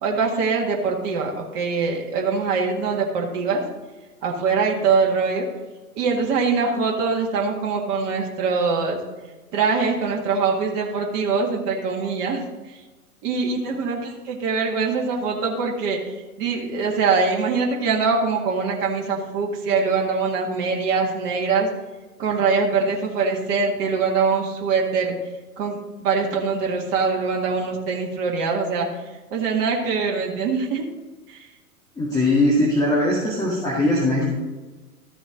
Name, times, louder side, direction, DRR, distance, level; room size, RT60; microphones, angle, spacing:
voice 1, 0.0-3.6 4.2-5.5 6.0-9.0 9.5-12.4 13.2-16.0 16.4-21.7 22.2-25.1 25.6-28.9 29.3-30.8 31.3-31.4, right 4 dB, 35° right, 0 dB, 1.9 m, -23 dB
voice 2, 32.0-34.3, left 1 dB, 10° left, -5 dB, 1.9 m, -20 dB
13.5 x 7.0 x 3.9 m, 1.2 s
figure-of-eight pair, 100°, 45 cm